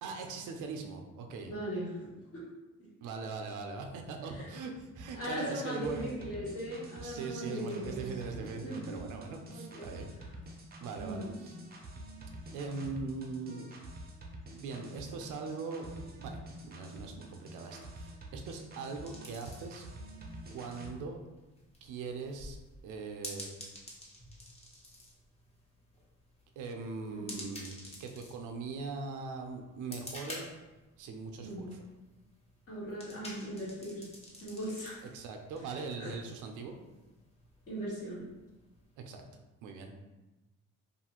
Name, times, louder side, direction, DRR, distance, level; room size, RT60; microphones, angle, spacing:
voice 1, 0.0-1.5 3.0-6.1 6.9-10.1 10.8-11.5 12.5-13.7 14.5-19.8 20.5-21.2 21.8-22.6 22.8-23.5 26.6-30.5 31.0-31.8 35.1-36.8 39.0-40.0, right 4 dB, 80° right, 4 dB, 0.5 m, -41 dB
voice 2, 1.4-2.0 2.3-2.4 4.3-4.5 5.1-8.1 8.6-9.0 9.5-9.9 11.0-11.3 27.1-27.4 31.4-31.7 32.7-34.0 34.4-34.9 36.0-36.1 37.7-38.3, equal, 50° left, -8 dB, 1.2 m, -39 dB
sound 1, 5.0-20.9, right 1 dB, 30° right, 0.5 m, -48 dB
sound 2, 19.1-39.0, left 1 dB, 20° left, 0.8 m, -51 dB
2.6 x 2.3 x 2.9 m, 1.1 s
cardioid pair, 90°, 30 cm